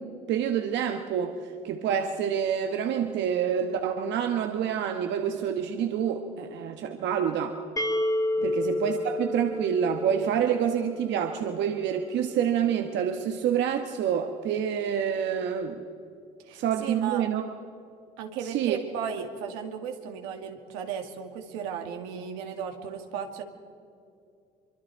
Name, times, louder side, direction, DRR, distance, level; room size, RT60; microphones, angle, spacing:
voice 1, 0.0-7.6 8.4-15.8 16.5-17.5 18.4-18.8, right 8 dB, 65° right, 5 dB, 1.2 m, -27 dB
sound 1, 7.8-11.5, left 1 dB, 15° left, 1.4 m, -30 dB
voice 2, 16.4-17.3 18.2-23.4, right 7 dB, 85° right, 4 dB, 2.0 m, -35 dB
24.0 x 24.0 x 4.6 m, 2.5 s
supercardioid pair, 85°, 20 cm